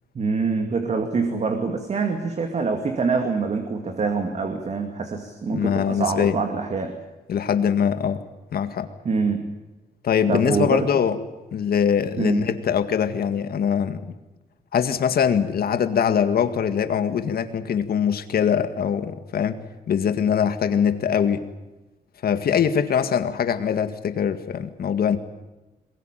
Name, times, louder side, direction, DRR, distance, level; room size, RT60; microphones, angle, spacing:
voice 1, 0.1-7.0 9.0-9.5 10.3-11.0 12.2-12.4, right 4 dB, 45° right, 5 dB, 2.5 m, -25 dB
voice 2, 5.5-6.4 7.3-8.2 8.5-8.9 10.0-11.2 11.5-14.1 14.7-19.6 19.9-21.4 22.2-25.2, left 8 dB, 65° left, 9 dB, 1.9 m, -22 dB
22.5 x 21.5 x 9.1 m, 1.1 s
wide cardioid pair, 150°, 17 cm